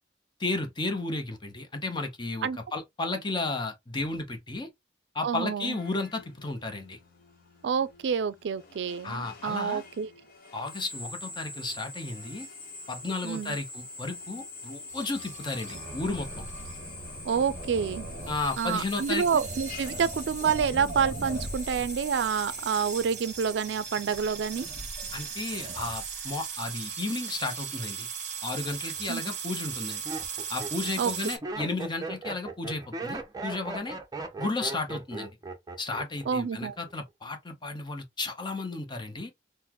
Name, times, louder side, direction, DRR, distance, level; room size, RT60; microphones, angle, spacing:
voice 1, 0.4-4.7 5.1-7.0 9.0-9.8 10.5-12.5 12.9-16.4 18.3-19.4 25.1-28.1 28.4-30.0 30.5-34.0 34.4-35.3 35.8-39.3, left 3 dB, 25° left, 0.7 m, -33 dB
voice 2, 5.2-5.8 7.6-10.1 13.2-13.6 17.2-18.1 18.6-24.7 29.1-29.2 31.0-31.1 36.3-36.8, right 6 dB, 75° right, 0.4 m, -28 dB
Drill, 5.7-23.0, left 3 dB, 55° left, 0.9 m, -44 dB
sound 1, 14.9-31.4, right 5 dB, 40° right, 1.0 m, -38 dB
Laughter, 28.9-29.1 29.7-36.3 36.6-37.1, right 3 dB, 20° right, 0.6 m, -38 dB
3.9 x 2.1 x 2.9 m
head